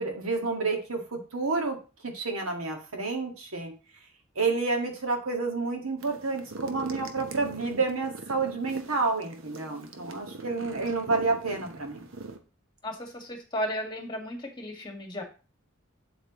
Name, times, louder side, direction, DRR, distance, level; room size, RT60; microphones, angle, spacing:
voice 1, 0.0-1.8 2.0-3.7 4.4-12.1, right 3 dB, 90° right, 3 dB, 1.9 m, -29 dB
sound 1, 6.0-12.4, right 3 dB, 70° right, 1.1 m, -42 dB
voice 2, 12.8-15.2, equal, 20° left, 2 dB, 1.9 m, -34 dB
8.2 x 7.8 x 3.1 m, 0.33 s
head